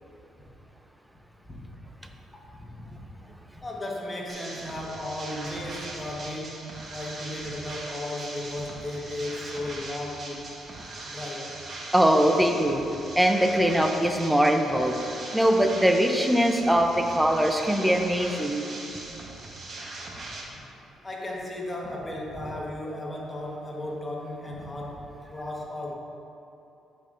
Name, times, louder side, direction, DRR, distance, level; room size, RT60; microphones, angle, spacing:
voice 1, 2.3-6.6 6.9-10.4 11.1-11.5 21.0-25.9, left 1 dB, 20° left, -2 dB, 1.2 m, -35 dB
sound 1, 4.3-20.4, right 2 dB, 45° right, 1.0 m, -40 dB
voice 2, 11.9-12.8 13.2-15.0 15.3-18.6, equal, 5° right, 4 dB, 0.5 m, -22 dB
8.9 x 5.3 x 2.5 m, 2.9 s
cardioid pair, 90°, 0 cm